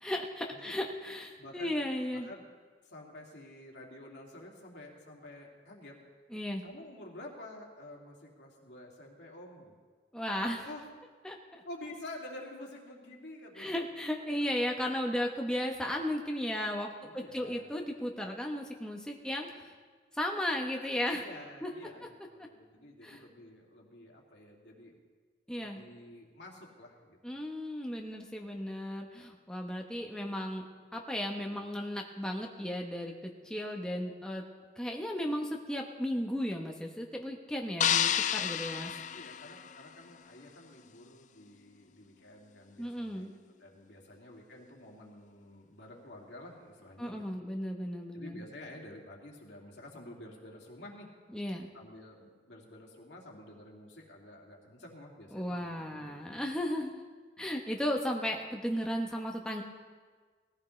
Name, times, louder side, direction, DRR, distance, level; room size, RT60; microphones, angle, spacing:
voice 1, 0.0-2.3 6.3-6.6 10.1-10.7 11.2-11.6 13.6-16.9 17.1-19.7 20.1-21.2 21.6-21.7 23.0-23.2 25.5-25.8 27.2-30.6 30.9-34.4 34.8-38.9 42.8-43.3 47.0-48.4 51.3-51.7 55.3-57.0 57.4-59.6, equal, 5° left, 0 dB, 0.9 m, -35 dB
voice 2, 1.4-1.8 2.1-2.5 2.8-5.9 6.6-9.8 10.6-10.8 11.6-13.7 17.0-17.7 21.1-24.9 25.5-27.2 39.1-47.2 48.1-51.1 51.7-56.2, left 1 dB, 80° left, -1 dB, 2.6 m, -49 dB
sound 1, 37.8-40.1, left 9 dB, 45° left, 0.4 m, -30 dB
20.0 x 14.5 x 3.2 m, 1.5 s
head